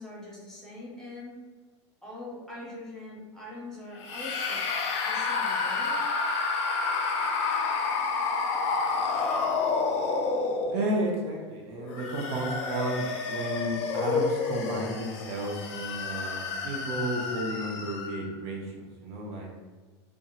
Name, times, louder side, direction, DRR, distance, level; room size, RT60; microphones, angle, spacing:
voice 1, 0.0-1.4 2.0-4.6 5.0-6.0, left 2 dB, 5° left, -6 dB, 0.9 m, -42 dB
sound 1, 4.0-11.1 11.8-18.3, left 4 dB, 50° left, 0.5 m, -29 dB
voice 2, 10.7-19.5, right 1 dB, 65° right, -1 dB, 0.5 m, -33 dB
2.7 x 2.2 x 2.3 m, 1.3 s
hypercardioid pair, 100°, 15 cm